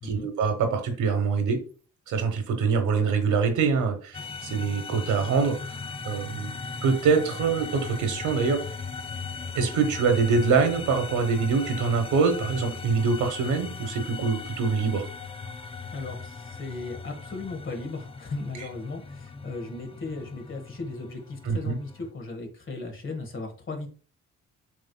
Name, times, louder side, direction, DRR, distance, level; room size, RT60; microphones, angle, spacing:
voice 1, 0.0-1.6 2.1-5.8 6.0-6.5 6.8-8.6 9.5-15.1 21.4-21.8, right 5 dB, 75° right, 6 dB, 1.2 m, -24 dB
sound 1, 4.1-22.1, left 4 dB, 20° left, 0.4 m, -38 dB
voice 2, 15.9-23.9, left 3 dB, 40° left, 4 dB, 1.5 m, -36 dB
7.3 x 3.2 x 2.2 m, 0.39 s
cardioid pair, 90°, 30 cm